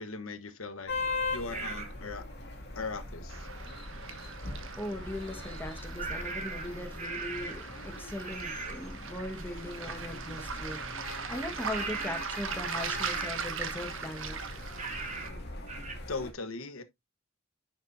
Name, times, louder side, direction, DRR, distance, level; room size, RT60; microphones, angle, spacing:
voice 1, 0.0-2.3 2.7-3.5 16.1-16.8, left 3 dB, 75° left, 1.2 m, -39 dB
sound 1, 0.9-16.3, left 2 dB, 55° left, 2.3 m, -41 dB
sound 2, 1.5-1.9 6.0-7.7 8.2-8.8 11.7-12.4 12.8-13.5 14.8-15.4 15.7-16.0, right 4 dB, 35° right, 1.7 m, -39 dB
Waves surf, 3.3-15.3, right 6 dB, 65° right, 1.3 m, -40 dB
voice 2, 4.8-14.4, left 1 dB, 10° left, 1.5 m, -40 dB
9.8 x 6.0 x 2.7 m
head